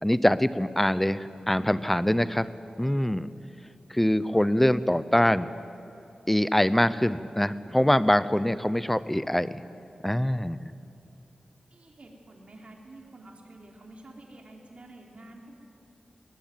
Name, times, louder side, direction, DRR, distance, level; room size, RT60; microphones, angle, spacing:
voice 1, 0.0-2.5 2.8-3.3 3.9-5.5 6.3-9.6 10.0-10.7, left 1 dB, 5° left, 15 dB, 0.8 m, -24 dB
voice 2, 11.7-15.5, right 2 dB, 55° right, 0 dB, 4.0 m, -49 dB
20.5 x 20.0 x 9.4 m, 2.8 s
wide cardioid pair, 75°, 2 cm